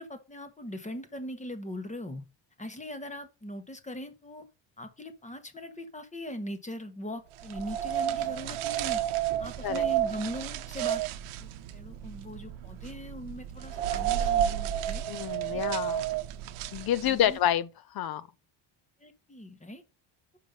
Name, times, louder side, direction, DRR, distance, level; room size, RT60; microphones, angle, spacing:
voice 1, 0.0-2.2 2.6-4.4 4.8-9.0 9.4-11.0 11.4-15.0 15.5-15.6 17.0-17.4 19.0-19.8, left 1 dB, 15° left, 1.2 m, -40 dB
sound 1, 7.4-17.4, right 11 dB, 75° right, 0.8 m, -31 dB
voice 2, 15.1-16.1 16.7-17.7 17.9-18.3, left 11 dB, 50° left, 0.5 m, -28 dB
5.8 x 5.1 x 5.2 m
cardioid pair, 125°, 50 cm